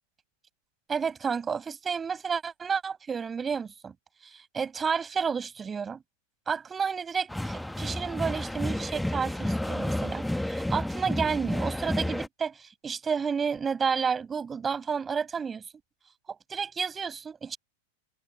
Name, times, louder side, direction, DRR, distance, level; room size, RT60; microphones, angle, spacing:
voice 1, 0.9-3.9 4.2-6.0 6.5-15.6 16.3-17.6, right 6 dB, 20° right, 5.7 m, -31 dB
sound 1, 7.3-12.3, left 1 dB, 5° left, 1.5 m, -31 dB
figure-of-eight pair, 90°, 0 cm